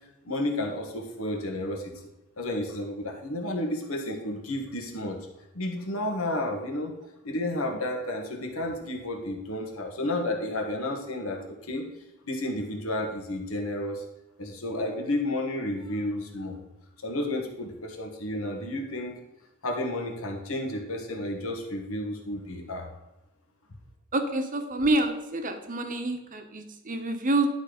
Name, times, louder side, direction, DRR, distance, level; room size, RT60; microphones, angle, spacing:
voice 1, 0.2-1.9 2.4-5.2 5.5-6.9 7.2-11.9 12.2-14.0 14.4-16.6 17.0-19.2 19.6-22.9, left 1 dB, 70° left, 2 dB, 1.7 m, -31 dB
voice 2, 24.1-27.5, right 2 dB, 40° right, 6 dB, 1.0 m, -27 dB
11.0 x 4.4 x 5.1 m, 0.97 s
head